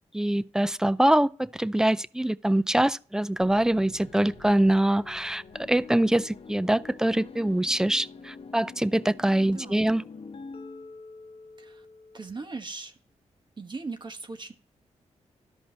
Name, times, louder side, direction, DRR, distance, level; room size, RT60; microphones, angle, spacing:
voice 1, 0.1-10.0, right 1 dB, 5° right, 0.4 m, -24 dB
sound 1, 3.4-8.6 9.2-9.9, right 2 dB, 75° right, 3.0 m, -55 dB
sound 2, 3.9-12.4, left 4 dB, 50° left, 0.9 m, -46 dB
voice 2, 9.4-9.8 11.6-11.9 12.1-12.9 13.6-14.5, right 3 dB, 35° right, 1.0 m, -39 dB
13.0 x 5.3 x 3.2 m
cardioid pair, 70°, 13 cm